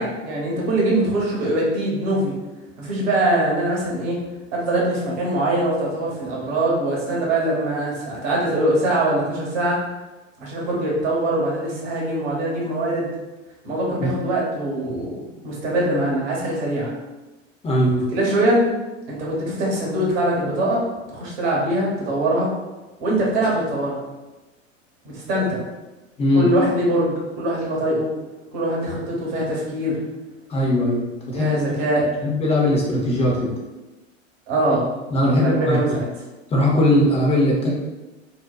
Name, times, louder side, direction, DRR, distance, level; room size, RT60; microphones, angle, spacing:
voice 1, 0.0-2.3 2.8-4.2 4.5-9.8 10.4-13.1 13.6-16.9 18.1-18.6 19.1-20.8 21.1-22.5 23.0-24.0 25.0-25.6 26.3-28.1 28.5-30.0 31.3-32.3 34.5-34.9 35.3-36.1, right 1 dB, 55° right, -4 dB, 1.0 m, -22 dB
voice 2, 17.6-18.0 26.2-26.5 30.5-31.8 32.2-33.5 35.1-36.0 36.5-37.7, left 1 dB, 15° left, -3 dB, 0.6 m, -20 dB
2.5 x 2.2 x 2.3 m, 1.1 s
hypercardioid pair, 90°, 39 cm